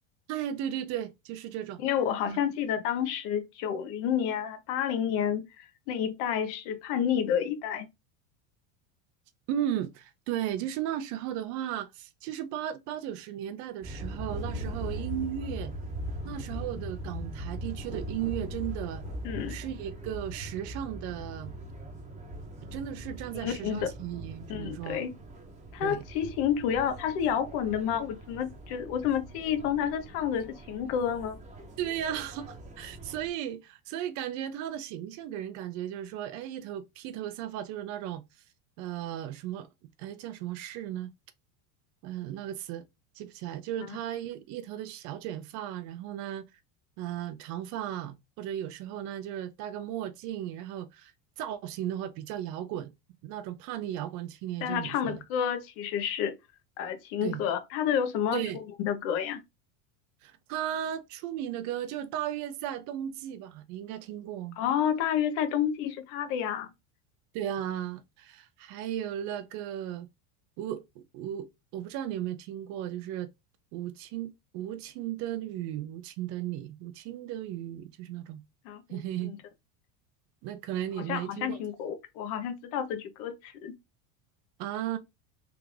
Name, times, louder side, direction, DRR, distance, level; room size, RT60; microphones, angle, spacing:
voice 1, 0.3-1.8 2.3-2.4 9.5-15.7 16.2-19.0 19.5-21.5 22.7-25.1 25.8-26.0 31.8-38.2 38.8-39.7 40.0-41.1 42.0-42.8 43.2-46.5 47.0-51.1 51.4-52.9 53.2-55.2 57.2-57.4 58.3-58.6 60.2-64.6 67.3-70.1 70.6-73.3 73.7-78.4 78.9-79.3 80.4-81.6 84.6-85.0, right 11 dB, 45° right, 0.4 m, -35 dB
voice 2, 1.8-7.9 19.2-19.6 23.3-23.9 24.5-25.1 25.7-31.4 54.6-56.4 56.8-59.4 64.6-66.7 78.6-79.4 81.0-83.7, left 9 dB, 60° left, 0.9 m, -30 dB
sound 1, 13.8-33.3, right 1 dB, 15° right, 0.8 m, -40 dB
3.5 x 2.4 x 3.2 m
supercardioid pair, 135°, 40 cm